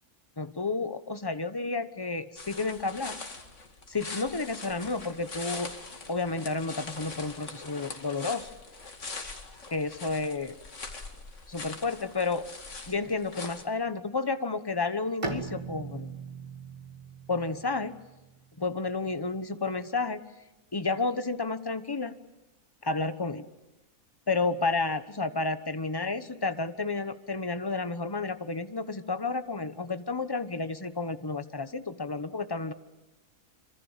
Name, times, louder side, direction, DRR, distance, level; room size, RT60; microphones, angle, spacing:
voice 1, 0.4-3.2 3.9-5.7 6.1-8.5 9.7-10.5 11.5-12.4 12.9-16.2 17.3-18.0 18.6-20.2 20.7-22.1 22.8-23.5 24.3-32.7, left 3 dB, 20° left, 11 dB, 1.0 m, -31 dB
sound 1, 2.4-13.6, left 3 dB, 55° left, 2.6 m, -42 dB
Bowed string instrument, 15.2-18.8, right 4 dB, 20° right, 1.9 m, -39 dB
26.0 x 25.5 x 7.4 m, 1.0 s
omnidirectional pair, 1.5 m